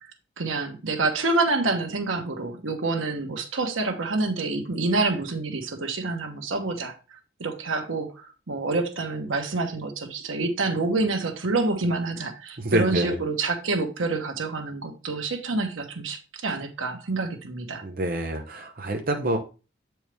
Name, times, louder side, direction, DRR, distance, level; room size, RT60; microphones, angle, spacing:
voice 1, 0.4-6.9 7.4-17.8, right 3 dB, 90° right, 1.2 m, -27 dB
voice 2, 12.6-13.2 17.8-19.4, right 1 dB, 45° right, 0.7 m, -26 dB
7.7 x 4.6 x 3.4 m
head